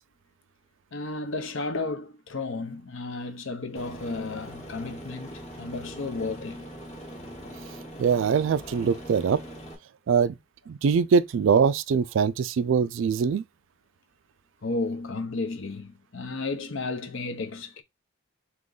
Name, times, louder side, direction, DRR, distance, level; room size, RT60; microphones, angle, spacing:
voice 1, 0.9-6.6 14.6-17.8, left 3 dB, 65° left, 0.8 m, -33 dB
Aircraft, 3.8-9.8, equal, 30° left, 1.0 m, -42 dB
voice 2, 8.0-9.4 10.1-10.4 10.7-13.4, right 6 dB, 65° right, 0.3 m, -23 dB
3.6 x 3.0 x 3.8 m
head